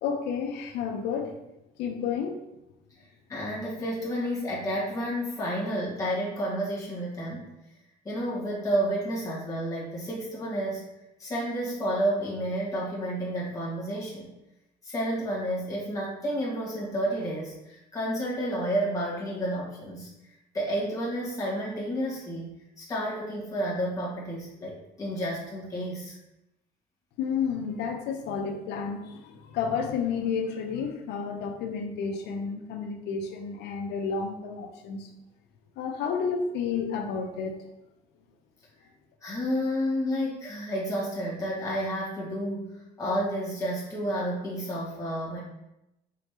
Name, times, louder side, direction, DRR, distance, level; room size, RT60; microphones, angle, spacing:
voice 1, 0.0-1.3 1.8-2.4 27.2-35.1 35.8-37.6, left 6 dB, 85° left, 4 dB, 0.7 m, -31 dB
voice 2, 3.3-7.5 8.0-10.8 11.2-14.3 14.8-20.1 20.5-26.1 39.2-45.4, equal, 20° left, -7 dB, 1.7 m, -30 dB
5.0 x 3.3 x 3.0 m, 0.89 s
cardioid pair, 110°, 17 cm